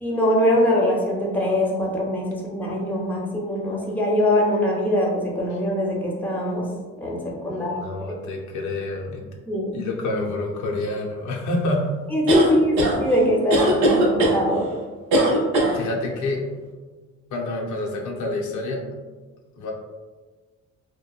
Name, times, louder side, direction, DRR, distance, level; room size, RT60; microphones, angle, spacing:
voice 1, 0.0-6.7 7.0-7.7 9.5-9.7 12.1-14.7, left 1 dB, 5° left, -3 dB, 0.6 m, -22 dB
voice 2, 7.5-9.2 9.7-11.9 15.7-16.4 17.3-18.8 19.6-19.7, left 2 dB, 75° left, -1 dB, 0.5 m, -28 dB
sound 1, 12.3-12.9 13.5-14.4 15.1-15.7, right 1 dB, 85° right, 0.6 m, -19 dB
2.9 x 2.1 x 2.3 m, 1.3 s
cardioid pair, 90°, 30 cm